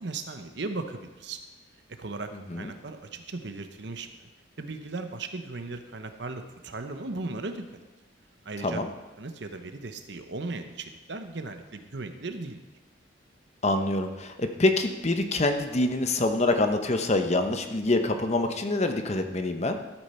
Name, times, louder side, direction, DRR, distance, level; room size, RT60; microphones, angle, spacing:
voice 1, 0.0-1.4 2.0-4.1 4.6-7.6 8.4-8.8 9.2-12.6, right 3 dB, 60° right, 8 dB, 0.9 m, -37 dB
voice 2, 13.6-19.8, left 2 dB, 35° left, 7 dB, 0.8 m, -25 dB
13.5 x 8.5 x 4.4 m, 1.1 s
head